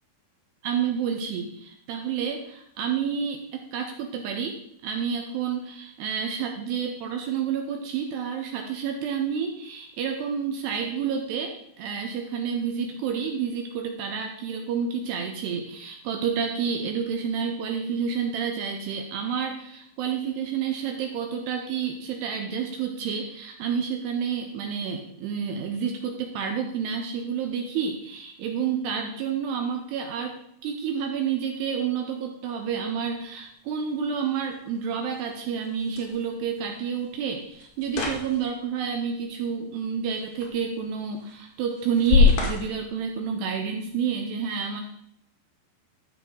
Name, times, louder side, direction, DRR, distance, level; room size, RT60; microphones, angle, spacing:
voice 1, 0.6-30.4 30.6-44.8, right 7 dB, 75° right, 3 dB, 2.6 m, -29 dB
sound 1, 33.0-43.9, left 5 dB, 60° left, 3.6 m, -29 dB
13.0 x 6.9 x 3.9 m, 0.74 s
omnidirectional pair, 5.5 m